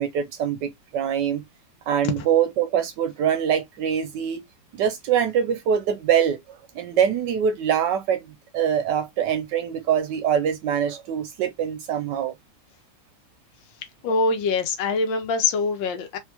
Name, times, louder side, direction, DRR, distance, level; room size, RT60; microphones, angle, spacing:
voice 1, 0.0-1.4 1.9-4.4 4.8-12.3, right 8 dB, 75° right, 1.1 m, -24 dB
voice 2, 14.0-16.2, left 4 dB, 80° left, 1.4 m, -24 dB
3.5 x 2.7 x 2.8 m
omnidirectional pair, 2.1 m